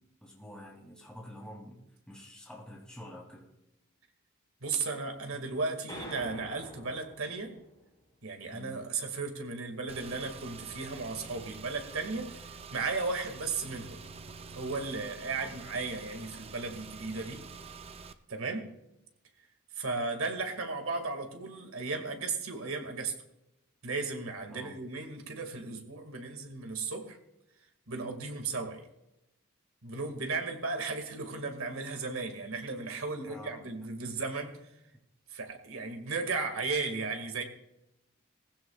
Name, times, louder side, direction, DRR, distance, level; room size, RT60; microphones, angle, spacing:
voice 1, 0.0-3.5 8.5-8.7 15.3-15.5 18.4-18.6 24.5-24.8 25.6-25.7 33.3-33.7 34.1-34.2, left 1 dB, 5° left, -3 dB, 2.8 m, -48 dB
voice 2, 4.6-7.6 8.2-14.0 14.6-17.4 18.3-18.6 19.8-23.2 23.8-27.2 27.9-28.9 29.8-34.5 35.3-37.4, right 4 dB, 75° right, 4 dB, 2.1 m, -35 dB
sound 1, 5.9-7.9, left 1 dB, 20° left, 5.3 m, -46 dB
Car / Engine, 9.9-18.1, right 5 dB, 30° right, 0.5 m, -47 dB
19.0 x 15.5 x 2.4 m, 0.89 s
head